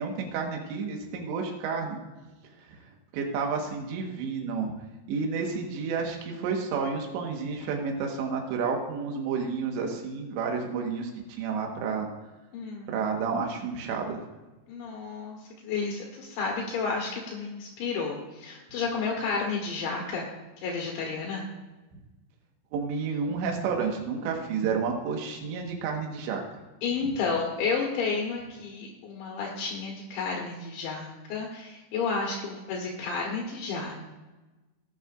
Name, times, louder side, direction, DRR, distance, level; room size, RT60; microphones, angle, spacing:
voice 1, 0.0-2.0 2.6-2.8 3.1-4.7 5.1-11.1 11.4-12.1 12.9-14.2 21.9-22.0 22.7-26.4, right 5 dB, 75° right, 1 dB, 3.5 m, -30 dB
voice 2, 12.5-13.0 14.7-15.4 15.6-20.3 20.6-21.5 26.8-34.1, left 4 dB, 75° left, -1 dB, 3.5 m, -31 dB
18.0 x 9.5 x 2.5 m, 1.2 s
omnidirectional pair, 5.5 m